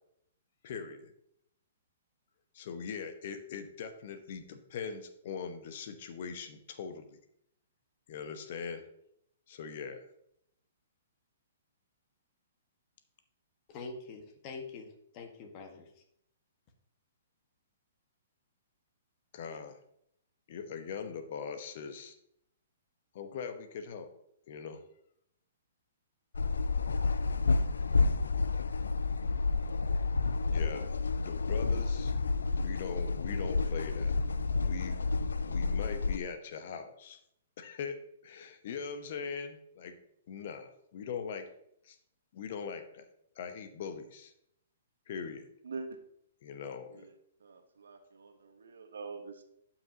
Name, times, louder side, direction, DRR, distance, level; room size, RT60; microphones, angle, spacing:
voice 1, 0.6-1.1 2.5-7.2 8.1-8.8 9.5-10.0 19.3-19.8 20.5-22.2 23.1-24.1 24.5-24.8 30.5-30.9 31.2-32.1 32.5-34.1 34.5-35.0 35.4-37.2 37.6-38.0 38.2-40.0 40.3-41.5 41.8-42.0 42.3-43.0 43.4-44.3 45.1-45.5 46.4-47.1, left 6 dB, 55° left, 8 dB, 1.0 m, -41 dB
voice 2, 13.7-16.0, left 4 dB, 35° left, 5 dB, 1.5 m, -45 dB
sound 1, 26.3-36.2, left 4 dB, 80° left, 0.4 m, -30 dB
voice 3, 47.4-49.4, right 4 dB, 75° right, 7 dB, 1.1 m, -44 dB
12.0 x 6.0 x 2.9 m, 0.74 s
hypercardioid pair, 125°, 0 cm